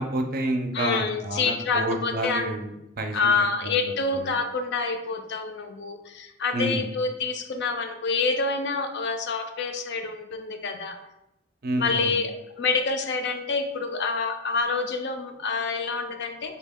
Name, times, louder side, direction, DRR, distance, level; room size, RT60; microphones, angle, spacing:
voice 1, 0.0-3.3 3.6-3.8 4.1-4.4 6.5-6.9 11.6-12.2, right 1 dB, 50° right, 5 dB, 0.5 m, -29 dB
voice 2, 0.7-2.5 3.1-11.0 11.8-16.6, left 4 dB, 60° left, 6 dB, 0.4 m, -27 dB
4.1 x 2.2 x 3.5 m, 0.89 s
head